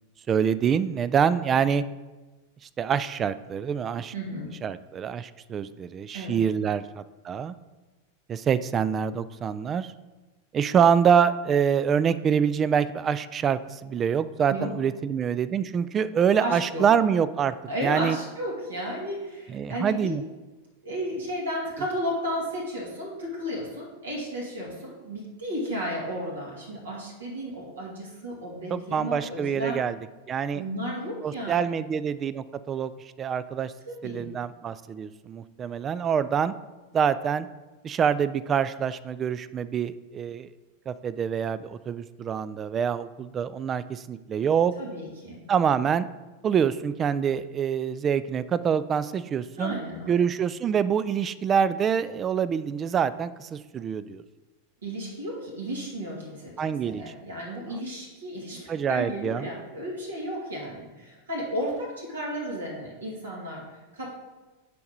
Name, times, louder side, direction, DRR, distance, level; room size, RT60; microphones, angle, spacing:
voice 1, 0.3-1.8 2.8-4.1 4.6-7.6 8.3-9.9 10.5-17.5 17.8-18.2 19.5-20.2 28.7-30.0 30.3-30.6 31.2-32.9 33.2-33.7 34.0-36.5 36.9-37.5 37.8-40.5 40.9-44.7 45.5-46.1 46.4-49.8 50.1-54.2 56.6-57.0 58.7-59.5, right 7 dB, 25° right, 15 dB, 0.3 m, -25 dB
voice 2, 4.1-4.6 6.1-6.5 14.5-14.7 16.4-16.9 17.7-20.1 20.8-29.9 30.5-31.7 33.9-34.3 44.8-45.4 49.6-50.2 54.8-64.1, equal, 70° right, -4 dB, 2.3 m, -33 dB
6.9 x 4.7 x 5.4 m, 1.2 s
figure-of-eight pair, 90°, 0 cm